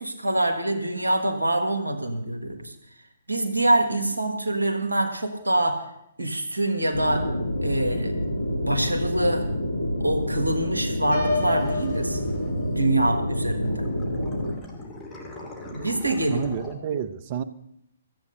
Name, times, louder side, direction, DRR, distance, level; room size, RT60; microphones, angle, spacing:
voice 1, 0.0-2.7 3.3-5.9 6.2-7.3 7.6-8.1 8.5-9.5 10.0-12.2 12.7-13.9 15.7-16.4, right 1 dB, 85° right, 4 dB, 1.5 m, -25 dB
sound 1, 6.9-14.6, left 1 dB, 75° left, 1.8 m, -28 dB
Piano, 11.1-13.0, left 3 dB, 55° left, 7.0 m, -30 dB
sound 2, 11.3-13.3 13.6-16.7, equal, 20° left, 2.6 m, -40 dB
voice 2, 16.0-17.4, right 8 dB, 40° right, 14 dB, 0.8 m, -30 dB
14.0 x 8.4 x 6.7 m, 0.79 s
figure-of-eight pair, 130°, 0 cm